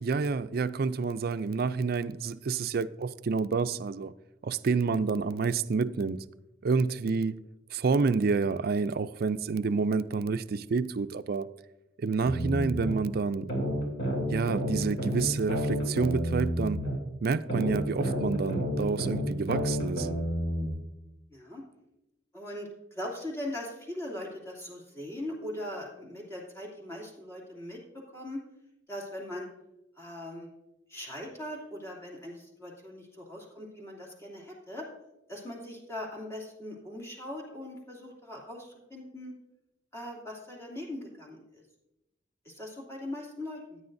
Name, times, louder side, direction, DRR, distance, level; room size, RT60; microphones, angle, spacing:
voice 1, 0.0-4.1 4.4-6.2 6.6-7.4 7.7-11.5 12.0-13.5 14.3-16.8 17.2-20.1, right 4 dB, 55° right, 0.4 m, -28 dB
sound 1, 12.2-13.0 13.5-17.0 17.5-20.7, equal, 65° left, 2.8 m, -30 dB
voice 2, 21.3-21.6 22.3-28.4 28.9-29.5 30.0-30.5 30.9-34.9 35.3-39.3 39.9-41.4 42.4-43.8, left 1 dB, 15° left, 2.6 m, -40 dB
15.0 x 9.6 x 2.6 m
head